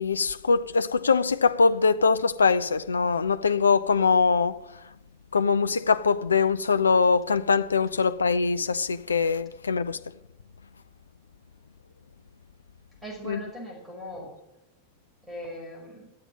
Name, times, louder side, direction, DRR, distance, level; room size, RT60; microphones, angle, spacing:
voice 1, 0.0-4.6 5.3-10.0 13.2-13.4, left 5 dB, 75° left, 0.4 m, -22 dB
voice 2, 13.0-14.3 15.2-16.1, equal, 10° right, 5.8 m, -39 dB
12.5 x 7.9 x 9.1 m
figure-of-eight pair, 90°, 0 cm